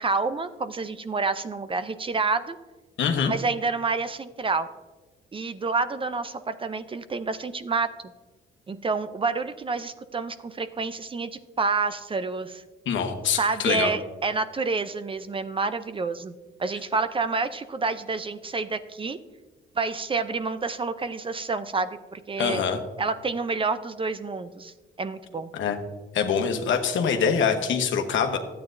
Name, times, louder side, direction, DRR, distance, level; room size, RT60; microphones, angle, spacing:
voice 1, 0.0-2.6 3.3-4.7 5.3-7.9 8.7-12.6 13.4-16.3 16.6-19.2 19.8-22.6 23.0-25.5, right 4 dB, 25° right, 12 dB, 0.5 m, -28 dB
voice 2, 3.0-3.3 12.9-13.9 22.4-22.8 25.5-25.8 26.1-28.4, left 6 dB, 75° left, 6 dB, 1.1 m, -24 dB
13.0 x 8.8 x 2.6 m, 1.3 s
cardioid pair, 90°, 20 cm